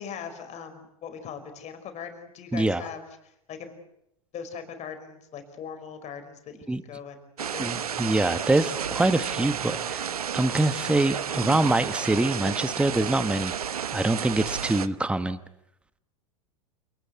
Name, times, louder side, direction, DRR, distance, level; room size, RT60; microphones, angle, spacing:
voice 1, 0.0-3.7 4.3-7.7, left 7 dB, 40° left, 8 dB, 5.3 m, -40 dB
voice 2, 2.5-2.9 6.7-6.8 7.6-10.0 10.3-13.5 13.9-15.4, right 2 dB, 5° right, 12 dB, 1.2 m, -24 dB
sound 1, 7.4-14.9, right 8 dB, 90° right, 1.0 m, -31 dB
28.5 x 19.0 x 8.2 m, 0.81 s
hypercardioid pair, 95°, 19 cm